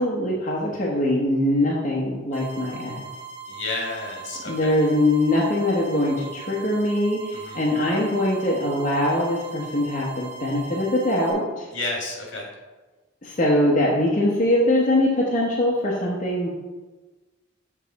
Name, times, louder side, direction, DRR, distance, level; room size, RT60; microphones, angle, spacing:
voice 1, 0.0-3.0 4.5-11.7 13.2-16.5, left 1 dB, 40° left, -5 dB, 1.0 m, -22 dB
sound 1, 2.3-11.3, right 5 dB, 15° right, 1.5 m, -40 dB
voice 2, 3.5-4.8 7.3-7.6 11.7-12.5, left 2 dB, 70° left, -2 dB, 2.1 m, -31 dB
7.2 x 4.7 x 4.0 m, 1.2 s
head